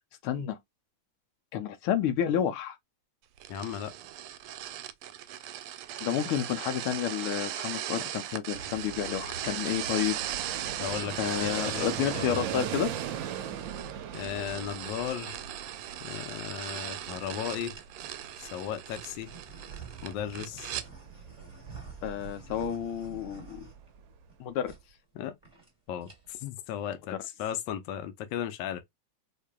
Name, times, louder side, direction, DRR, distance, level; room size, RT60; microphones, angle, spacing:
voice 1, 0.2-0.6 1.5-2.8 6.0-10.2 10.4-10.7 11.2-12.9 22.0-23.7 24.4-24.7, left 9 dB, 85° left, 1.6 m, -30 dB
sound 1, 3.4-20.9, right 11 dB, 90° right, 1.5 m, -38 dB
voice 2, 3.5-3.9 10.8-11.1 11.4-11.9 12.1-12.4 14.1-15.4 16.0-17.7 18.4-19.3 20.0-20.8 25.1-25.4 25.9-28.8, left 10 dB, 70° left, 1.2 m, -35 dB
Fixed-wing aircraft airplane, 8.5-24.3, right 8 dB, 70° right, 1.3 m, -40 dB
sound 2, 15.8-16.0 16.7-17.3 17.7-18.2 18.9-24.4 24.6-24.8 25.1-25.2 25.4-25.7 26.0-26.5, right 6 dB, 5° right, 1.3 m, -49 dB
4.7 x 2.6 x 2.2 m
omnidirectional pair, 2.4 m